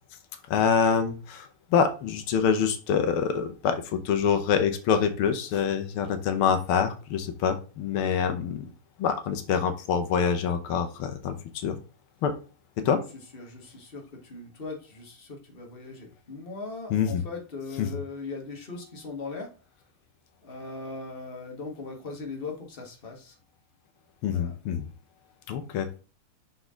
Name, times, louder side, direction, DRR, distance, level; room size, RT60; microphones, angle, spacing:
voice 1, 0.5-8.7 9.0-11.8 12.2-12.3 12.9-13.0 16.9-17.2 17.8-18.0 24.2-24.9 25.5-26.0, left 7 dB, 90° left, 8 dB, 1.7 m, -26 dB
voice 2, 13.3-19.5 20.4-23.4 24.3-24.5, left 3 dB, 30° left, 1 dB, 1.7 m, -39 dB
6.4 x 4.7 x 3.7 m, 0.34 s
omnidirectional pair, 2.3 m